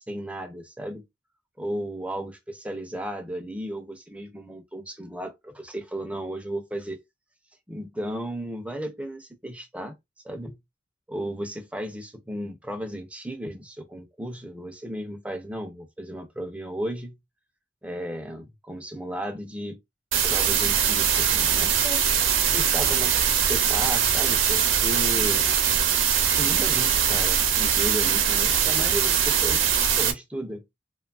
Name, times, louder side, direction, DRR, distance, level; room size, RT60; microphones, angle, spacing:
voice 1, 0.1-1.0 1.6-2.3 2.6-7.0 7.7-9.9 10.2-10.6 11.1-17.2 17.8-19.8 20.2-22.1 22.5-25.5 26.3-29.7 30.0-30.6, equal, 5° right, 0.4 m, -34 dB
sound 1, 20.1-30.1, right 8 dB, 80° right, 0.6 m, -22 dB
2.9 x 2.2 x 2.3 m
head